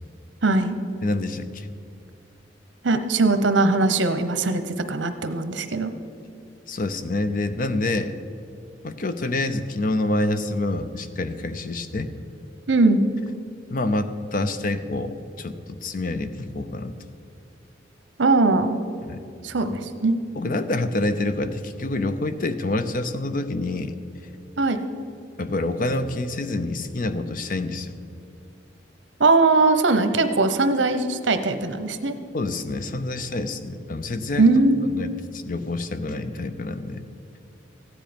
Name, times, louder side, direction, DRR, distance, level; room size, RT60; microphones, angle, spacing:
voice 1, 0.4-0.8 2.8-5.9 12.7-13.0 18.2-18.8 19.4-20.2 24.6-24.8 29.2-32.2 34.4-34.9, right 3 dB, 75° right, 9 dB, 0.9 m, -20 dB
voice 2, 1.0-1.7 6.7-8.2 8.8-12.1 13.7-16.9 19.0-19.2 20.4-24.0 25.4-27.9 32.3-34.5 34.9-37.0, left 2 dB, 50° left, 10 dB, 0.6 m, -27 dB
14.5 x 10.0 x 5.2 m, 2.5 s
head